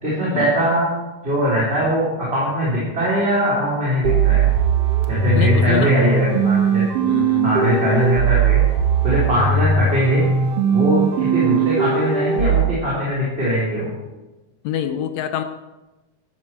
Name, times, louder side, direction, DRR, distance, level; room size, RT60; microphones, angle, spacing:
voice 1, 0.0-0.9 1.2-4.5 5.1-6.8 7.4-8.6 9.0-10.2 10.7-13.9, equal, 15° right, -8 dB, 3.9 m, -21 dB
sound 1, 4.0-12.6, right 6 dB, 60° right, 1.7 m, -19 dB
voice 2, 5.3-5.9 7.0-8.1 14.6-15.4, left 9 dB, 75° left, 8 dB, 1.7 m, -26 dB
14.0 x 12.0 x 4.6 m, 1.1 s
omnidirectional pair, 3.8 m